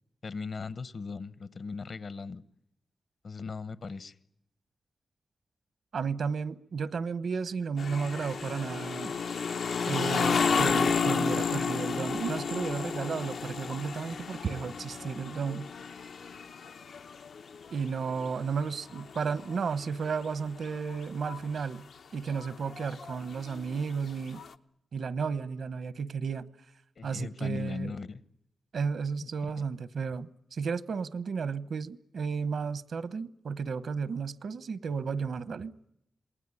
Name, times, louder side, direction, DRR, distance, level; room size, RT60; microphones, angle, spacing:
voice 1, 0.2-2.4 3.2-4.1 27.0-28.2 29.2-29.3, left 4 dB, 60° left, 1.1 m, -38 dB
voice 2, 5.9-9.2 9.8-15.7 17.7-21.9 22.1-24.4 24.9-26.5 27.0-27.9 28.7-35.7, right 5 dB, 75° right, 1.0 m, -33 dB
sound 1, 7.8-17.7 18.1-19.6 20.2-20.3 20.6-21.4 22.3-23.8 24.4-24.5, left 5 dB, 80° left, 1.0 m, -32 dB
27.5 x 20.0 x 9.8 m
wide cardioid pair, 125°, 0 cm